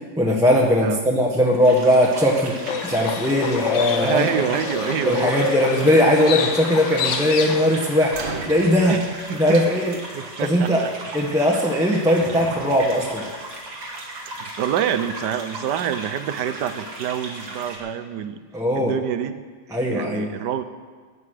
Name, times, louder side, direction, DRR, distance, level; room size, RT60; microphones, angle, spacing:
voice 1, 0.2-2.5 2.8-4.2 5.0-8.1 8.5-8.9 9.4-10.0 10.4-10.8 11.1-13.2 18.5-18.9 19.7-20.3, equal, ahead, -2 dB, 1.2 m, -19 dB
sound 1, 1.6-17.8, right 2 dB, 85° right, 3.0 m, -36 dB
Livestock farm animals working animals, 2.7-8.0, left 8 dB, 60° left, 0.8 m, -27 dB
voice 2, 4.0-5.4 8.9-9.0 9.3-9.6 10.1-10.9 14.3-18.4 18.7-19.4 19.9-20.6, right 9 dB, 70° right, 11 dB, 1.3 m, -26 dB
sound 2, 8.1-10.4 11.5-11.9 12.2-13.9, right 3 dB, 35° right, 1.0 m, -37 dB
16.0 x 9.6 x 6.5 m, 1.5 s
omnidirectional pair, 2.0 m